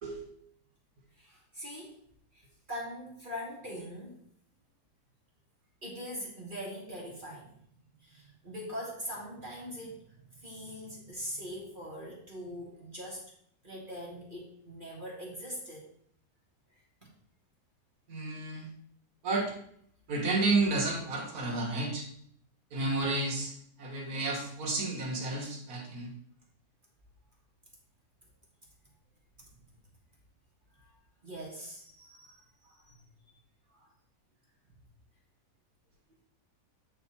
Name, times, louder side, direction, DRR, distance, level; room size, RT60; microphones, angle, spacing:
voice 1, 1.2-2.0 2.3-4.2 5.8-7.5 8.0-13.2 13.6-15.9 30.8-31.0 31.2-33.0 33.7-33.9, equal, 35° right, -3 dB, 1.4 m, -42 dB
voice 2, 18.1-18.7 19.2-19.5 20.1-22.1 22.7-23.5 23.8-26.1, right 2 dB, 65° right, -2 dB, 1.8 m, -31 dB
7.9 x 3.5 x 4.2 m, 0.66 s
omnidirectional pair, 1.7 m